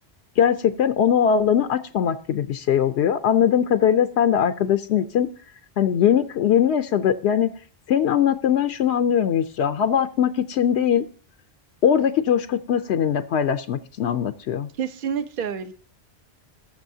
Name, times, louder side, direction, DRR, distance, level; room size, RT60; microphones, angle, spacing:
voice 1, 0.4-5.3 5.8-7.5 7.9-11.0 11.8-14.7, left 8 dB, 85° left, 9 dB, 0.9 m, -21 dB
voice 2, 14.8-15.7, right 7 dB, 60° right, 8 dB, 0.9 m, -28 dB
18.5 x 6.9 x 2.7 m, 0.42 s
omnidirectional pair, 1.1 m